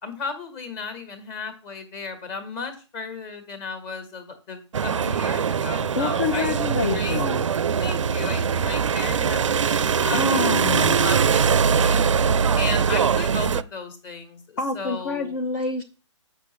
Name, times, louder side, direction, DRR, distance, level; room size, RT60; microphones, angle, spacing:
voice 1, 0.0-6.6 6.9-7.2 7.8-10.4 10.7-11.4 11.7-12.2 12.5-15.4, left 4 dB, 20° left, 7 dB, 1.4 m, -35 dB
sound 1, 4.7-13.6, right 6 dB, 80° right, 0.5 m, -22 dB
voice 2, 5.9-7.5 10.1-11.1 14.6-15.8, left 4 dB, 45° left, 3 dB, 0.9 m, -27 dB
8.2 x 5.9 x 3.2 m, 0.33 s
hypercardioid pair, 160°, 16 cm